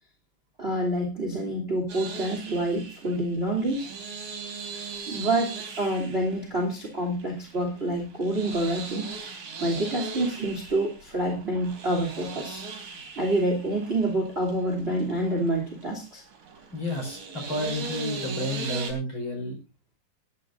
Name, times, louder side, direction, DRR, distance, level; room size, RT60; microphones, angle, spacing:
voice 1, 0.6-3.9 5.1-9.1 9.6-12.6 13.2-16.2, right 1 dB, 20° right, 3 dB, 2.6 m, -27 dB
sound 1, 1.9-18.9, right 4 dB, 55° right, 4.1 m, -39 dB
voice 2, 16.7-19.6, left 1 dB, 35° left, 3 dB, 5.3 m, -31 dB
20.5 x 11.0 x 2.6 m, 0.28 s
omnidirectional pair, 4.3 m